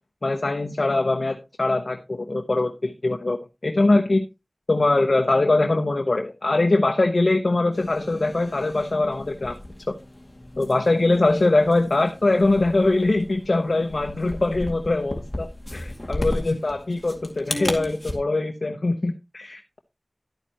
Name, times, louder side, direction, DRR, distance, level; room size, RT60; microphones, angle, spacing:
voice 1, 0.2-3.4 3.6-4.2 4.7-9.6 10.6-19.8, left 2 dB, 80° left, 4 dB, 0.9 m, -22 dB
sound 1, 7.7-18.1, left 1 dB, 30° left, 2.2 m, -35 dB
11.5 x 9.0 x 3.0 m, 0.25 s
wide cardioid pair, 45°, 0 cm